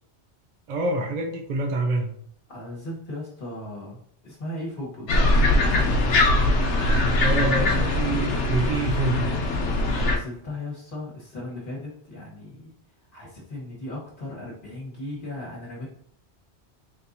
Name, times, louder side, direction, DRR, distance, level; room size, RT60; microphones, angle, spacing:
voice 1, 0.7-2.1 7.2-9.4, right 2 dB, 50° right, 1 dB, 0.5 m, -26 dB
voice 2, 2.5-6.1 6.9-7.5 10.0-12.7 13.1-15.9, left 1 dB, 50° left, -6 dB, 1.4 m, -37 dB
sound 1, 5.1-10.2, left 2 dB, 85° left, 1.1 m, -21 dB
4.2 x 3.6 x 2.6 m, 0.64 s
omnidirectional pair, 1.1 m